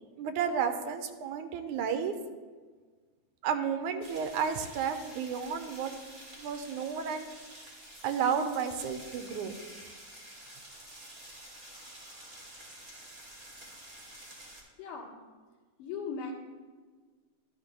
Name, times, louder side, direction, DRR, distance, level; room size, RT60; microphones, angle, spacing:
voice 1, 0.2-2.1 3.4-5.9 6.4-7.3 8.0-9.6, right 7 dB, 80° right, 8 dB, 2.0 m, -32 dB
sound 1, 4.0-14.6, right 1 dB, 25° right, 1.8 m, -49 dB
voice 2, 14.8-15.2 15.8-16.3, left 5 dB, 80° left, -2 dB, 3.0 m, -38 dB
12.5 x 11.0 x 2.2 m, 1.4 s
omnidirectional pair, 3.6 m